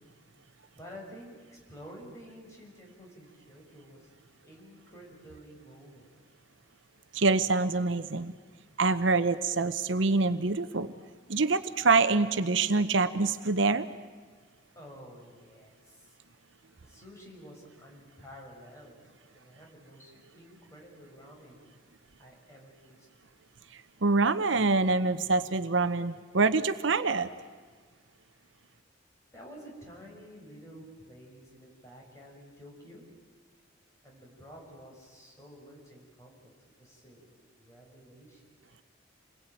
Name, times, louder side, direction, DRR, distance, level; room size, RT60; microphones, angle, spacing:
voice 1, 0.7-4.1 4.4-6.1 14.7-16.2 16.8-19.0 19.3-21.6 22.2-23.1 29.3-33.0 34.0-36.5 36.8-38.5, equal, 15° left, -2 dB, 6.3 m, -50 dB
voice 2, 7.1-8.3 8.8-10.9 11.3-13.9 23.7-27.3, right 3 dB, 70° right, 12 dB, 0.9 m, -25 dB
28.0 x 21.0 x 9.1 m, 1.5 s
head